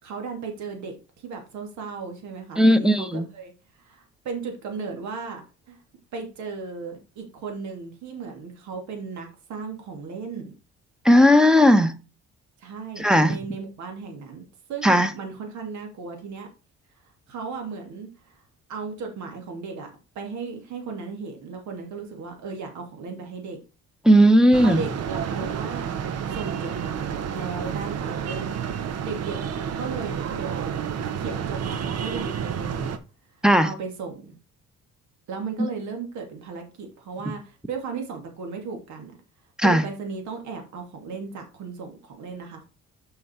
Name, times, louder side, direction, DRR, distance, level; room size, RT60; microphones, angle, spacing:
voice 1, 0.0-3.5 3.8-5.4 5.7-5.8 6.1-10.5 12.6-14.4 14.7-16.5 17.3-18.4 18.7-19.9 20.1-23.6 24.6-25.9 26.3-28.6 29.0-29.4 29.8-30.8 31.2-33.0 33.6-34.3 35.3-39.1 39.6-42.7, right 5 dB, 75° right, 2.5 m, -36 dB
voice 2, 2.6-3.3 11.0-12.0 13.0-13.4 14.8-15.1 24.0-24.8 33.4-33.7 39.6-39.9, equal, ahead, 1.1 m, -16 dB
sound 1, 24.5-33.0, right 8 dB, 60° right, 1.0 m, -30 dB
6.3 x 5.6 x 4.5 m
cardioid pair, 85°, 29 cm